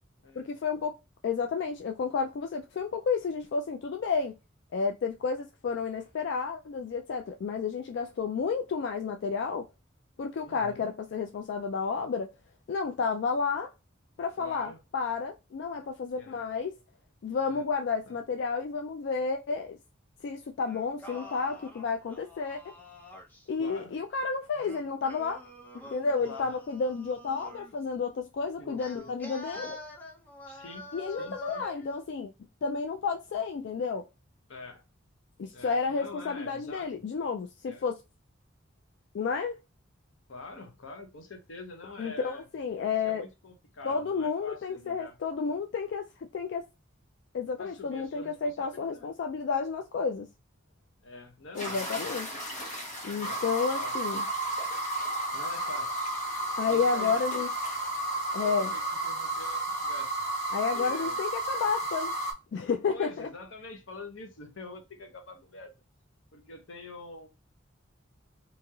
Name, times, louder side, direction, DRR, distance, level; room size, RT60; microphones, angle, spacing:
voice 1, 0.4-1.0 1.2-4.3 4.7-9.7 10.2-12.3 12.7-13.7 14.2-16.8 17.2-19.8 20.2-22.6 23.5-25.4 25.9-29.8 30.9-32.3 32.6-34.1 35.4-38.0 39.1-39.6 42.0-43.2 43.8-46.1 46.3-46.6 47.3-50.3 51.5-52.3 53.0-54.3 56.6-57.5 58.3-58.7 60.5-62.1 62.5-63.3, left 5 dB, 60° left, 0.3 m, -31 dB
voice 2, 10.4-10.9 14.4-14.8 16.2-16.4 17.4-17.6 18.0-18.2 23.6-23.9 26.3-26.6 28.6-29.1 29.5-29.6 30.5-31.6 34.5-34.8 35.5-36.9 37.7-37.9 40.3-42.4 43.0-45.2 47.6-49.1 51.0-52.6 53.1-53.9 55.3-56.0 56.6-57.2 58.4-60.1 60.7-61.2 62.9-65.7 66.3-67.3, left 3 dB, 85° left, 0.8 m, -45 dB
Singing, 20.7-23.5 24.5-27.7 28.8-31.9, equal, 10° left, 0.6 m, -47 dB
sound 1, 51.6-62.3, right 1 dB, 40° left, 1.0 m, -32 dB
3.0 x 2.8 x 2.3 m
head